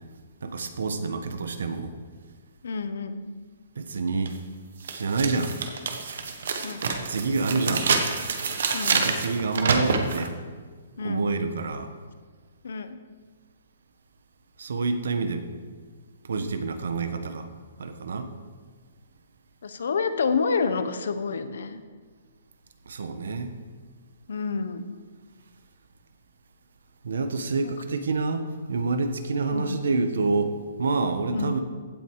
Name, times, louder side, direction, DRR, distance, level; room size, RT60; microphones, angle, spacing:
voice 1, 0.4-1.9 3.7-4.3 4.9-5.5 7.1-7.9 8.9-10.3 11.0-11.9 14.6-15.5 16.2-17.5 17.8-18.3 22.9-23.5 27.0-31.6, right 3 dB, 80° right, 9 dB, 1.3 m, -27 dB
voice 2, 2.6-3.3 6.6-6.9 7.5-7.8 8.7-9.1 11.0-11.3 12.6-13.0 19.6-21.8 24.3-24.9 27.6-27.7 29.5-29.8 31.3-31.6, left 5 dB, 70° left, 10 dB, 1.1 m, -29 dB
sound 1, 4.3-4.4 4.8-10.3, right 5 dB, 55° right, 1.4 m, -27 dB
16.0 x 9.2 x 4.8 m, 1.5 s
hypercardioid pair, 180°, 0 cm